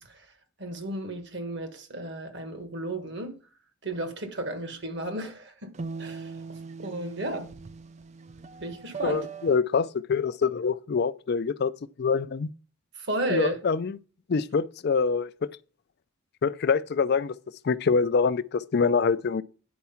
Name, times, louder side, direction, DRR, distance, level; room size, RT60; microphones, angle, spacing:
voice 1, 0.6-3.4 3.8-5.7 6.0-7.5 8.6-9.3 13.0-13.6, right 1 dB, 50° right, 1.4 m, -33 dB
sound 1, 5.7-9.6, right 5 dB, 30° right, 0.4 m, -40 dB
voice 2, 9.0-11.7 12.0-12.5 13.3-14.0 14.3-15.3 16.4-17.3 17.6-19.4, left 5 dB, 50° left, 0.4 m, -25 dB
9.5 x 4.6 x 5.7 m
head